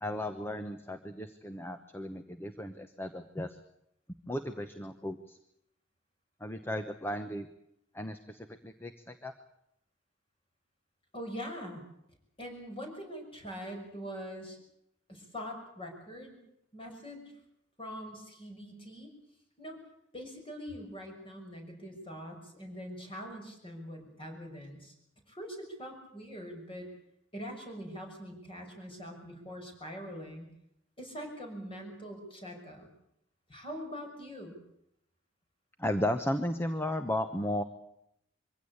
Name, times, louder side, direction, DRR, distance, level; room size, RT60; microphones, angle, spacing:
voice 1, 0.0-3.6 4.3-5.4 6.4-7.5 7.9-9.3 35.8-37.6, left 1 dB, 10° left, 8 dB, 1.0 m, -35 dB
voice 2, 11.1-11.8 12.4-14.6 15.1-16.4 16.7-17.3 17.8-19.1 19.6-19.8 20.1-24.9 25.3-26.9 27.3-30.5 31.0-32.9 33.5-34.6, equal, 25° left, 3 dB, 6.3 m, -43 dB
24.0 x 16.5 x 8.7 m, 0.78 s
head